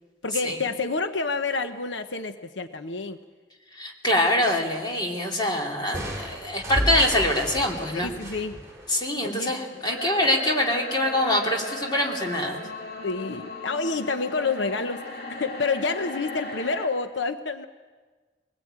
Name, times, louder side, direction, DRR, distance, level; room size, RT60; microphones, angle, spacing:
voice 1, 0.2-3.2 7.9-8.6 9.2-9.5 13.0-17.7, left 4 dB, 80° left, 9 dB, 1.0 m, -28 dB
voice 2, 3.7-8.1 8.9-12.6, left 1 dB, 25° left, 0 dB, 2.9 m, -24 dB
sound 1, 5.9-9.6, equal, 15° right, 4.2 m, -32 dB
sound 2, 9.9-16.9, left 2 dB, 60° left, 2.9 m, -37 dB
23.0 x 20.0 x 8.9 m, 1.4 s
head